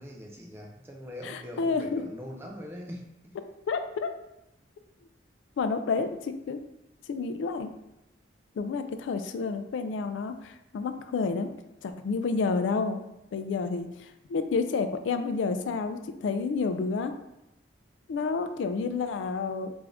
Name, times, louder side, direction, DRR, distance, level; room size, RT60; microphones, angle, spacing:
voice 1, 0.0-3.4, equal, 15° right, 0 dB, 0.4 m, -42 dB
voice 2, 1.2-2.0 3.7-4.1 5.6-6.6 7.1-7.7 8.6-11.5 11.8-13.0 13.3-17.1 18.1-19.7, left 4 dB, 85° left, 9 dB, 0.3 m, -30 dB
3.4 x 2.5 x 3.5 m, 0.87 s
head